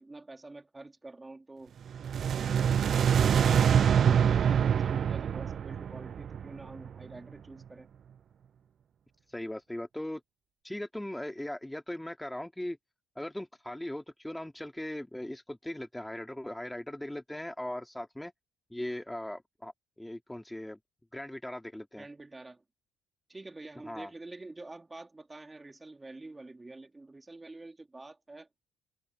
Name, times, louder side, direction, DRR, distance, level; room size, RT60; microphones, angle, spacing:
voice 1, 0.0-1.7 2.3-7.9 21.9-22.6 23.3-28.5, right 2 dB, 15° right, 4.0 m, -47 dB
sound 1, 1.9-7.0, right 8 dB, 50° right, 0.3 m, -25 dB
voice 2, 3.3-3.6 9.3-10.2 10.6-12.8 13.2-18.3 18.7-19.7 20.0-20.8 21.1-22.1 23.9-24.1, left 1 dB, 5° left, 2.6 m, -39 dB
supercardioid pair, 70°, 0 cm